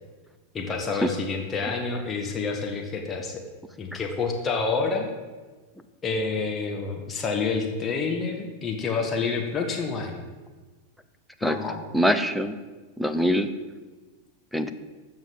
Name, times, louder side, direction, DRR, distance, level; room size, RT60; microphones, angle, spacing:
voice 1, 0.5-3.4 3.8-5.1 6.0-10.2 11.4-11.8, left 4 dB, 20° left, 2 dB, 1.6 m, -28 dB
voice 2, 11.9-12.6 13.0-13.5 14.5-14.7, equal, ahead, 10 dB, 0.8 m, -23 dB
14.5 x 5.8 x 7.8 m, 1.3 s
figure-of-eight pair, 90°, 0 cm